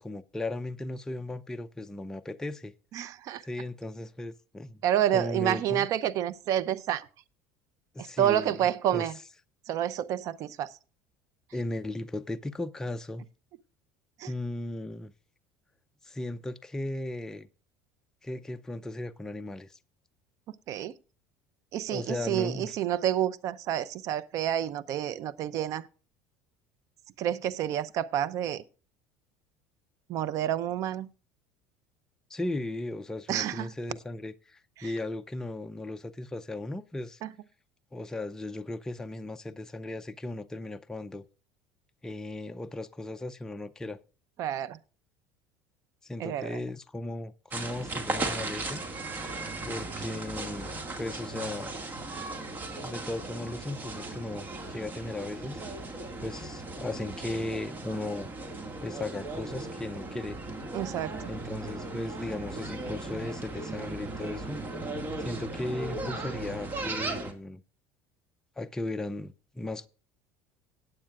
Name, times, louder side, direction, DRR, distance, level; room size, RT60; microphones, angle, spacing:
voice 1, 0.0-2.7 3.4-4.8 5.1-5.9 7.9-9.1 11.5-13.2 14.3-15.1 16.0-17.5 18.2-19.8 21.9-22.7 32.3-37.2 37.9-41.2 42.0-44.0 46.0-48.8 49.7-51.8 52.8-55.6 56.2-58.3 58.8-60.4 61.3-64.6 65.2-67.6 68.6-69.9, left 2 dB, 10° left, 0.5 m, -36 dB
voice 2, 2.9-3.4 4.8-7.1 8.0-9.1 9.7-10.7 14.2-14.3 20.7-20.9 21.7-25.9 27.2-28.6 30.1-31.1 33.3-33.7 34.8-34.9 37.2-37.3 44.4-44.8 46.2-46.6 60.7-61.3, right 11 dB, 55° right, 0.6 m, -29 dB
sound 1, 47.5-67.3, right 2 dB, 30° right, 2.0 m, -37 dB
17.5 x 8.7 x 2.4 m
supercardioid pair, 120°, 7 cm